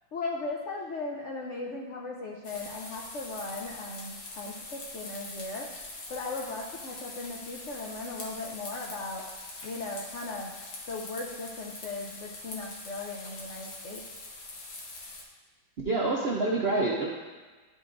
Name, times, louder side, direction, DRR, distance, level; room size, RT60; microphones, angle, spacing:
voice 1, 0.1-5.7 6.1-9.2 9.6-10.5 10.9-14.0, left 3 dB, 80° left, -2 dB, 0.6 m, -37 dB
sound 1, 2.4-15.2, left 2 dB, 55° left, 1.4 m, -43 dB
voice 2, 15.8-17.1, right 2 dB, 75° right, -2 dB, 0.5 m, -27 dB
11.0 x 5.2 x 2.5 m, 1.3 s
omnidirectional pair, 2.1 m